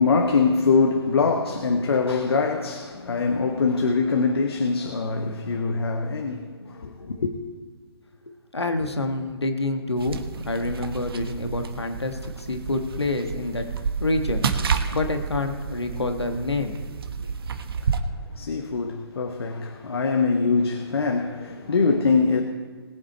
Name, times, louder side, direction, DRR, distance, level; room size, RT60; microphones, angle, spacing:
voice 1, 0.0-7.3 18.3-22.4, left 4 dB, 70° left, 1.2 m, -23 dB
voice 2, 8.3-13.7 14.0-14.4 14.9-16.8, left 2 dB, 90° left, 1.5 m, -27 dB
sound 1, 10.0-18.0, right 5 dB, 65° right, 1.2 m, -30 dB
21.0 x 7.8 x 4.3 m
figure-of-eight pair, 130°, 13 cm